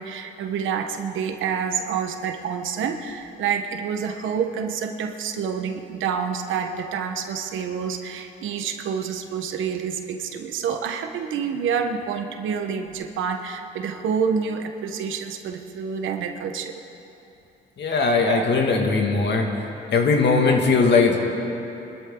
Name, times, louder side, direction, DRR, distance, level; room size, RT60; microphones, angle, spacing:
voice 1, 0.0-16.8 18.2-18.4, right 6 dB, 80° right, 5 dB, 1.3 m, -28 dB
voice 2, 17.8-19.5 19.9-21.2, left 4 dB, 60° left, 1 dB, 2.2 m, -19 dB
26.0 x 12.5 x 3.9 m, 2.9 s
cardioid pair, 90°, 20 cm